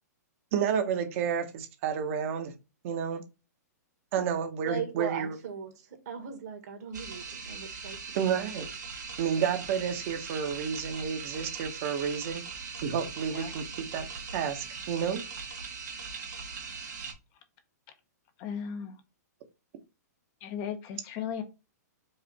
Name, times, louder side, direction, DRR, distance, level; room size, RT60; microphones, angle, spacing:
voice 1, 0.5-2.5 2.8-3.2 4.1-5.4 8.1-8.7 9.2-15.2, right 7 dB, 50° right, 1.1 m, -31 dB
voice 2, 4.6-8.0, right 7 dB, 65° right, 1.8 m, -38 dB
sound 1, 6.9-17.1, right 5 dB, 85° right, 1.4 m, -40 dB
voice 3, 18.4-19.0 20.4-21.4, left 8 dB, 35° left, 0.8 m, -36 dB
4.9 x 2.5 x 4.2 m
hypercardioid pair, 135°, 9 cm